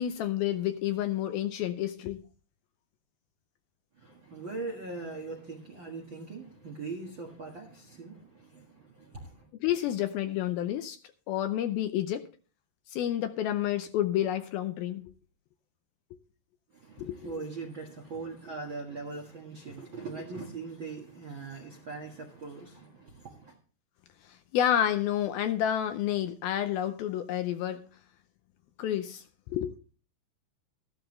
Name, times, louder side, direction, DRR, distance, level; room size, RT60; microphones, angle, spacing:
voice 1, 0.0-2.2 9.6-11.0 11.3-12.3 12.9-15.1 17.0-17.3 24.2-27.9 28.8-29.8, left 11 dB, 80° left, 2.3 m, -30 dB
voice 2, 3.9-9.5 16.7-23.6, right 3 dB, 50° right, 1.5 m, -41 dB
14.0 x 12.5 x 3.2 m
omnidirectional pair, 4.8 m